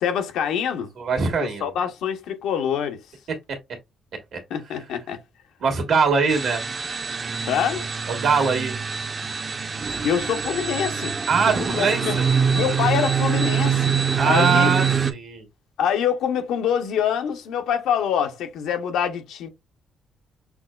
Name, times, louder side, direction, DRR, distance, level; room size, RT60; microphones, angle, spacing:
voice 1, 0.0-0.9 1.4-3.0 4.5-5.2 7.5-7.9 10.0-11.2 11.6-12.2 12.5-14.0 14.2-14.7 15.8-19.5, left 8 dB, 85° left, 0.7 m, -25 dB
voice 2, 1.0-1.7 3.5-3.6 4.3-4.4 5.6-6.6 8.1-8.7 11.3-12.3 14.2-15.4, right 5 dB, 70° right, 1.3 m, -22 dB
sound 1, 6.3-15.1, right 6 dB, 35° right, 0.5 m, -24 dB
5.9 x 2.1 x 2.3 m
cardioid pair, 90°, 0 cm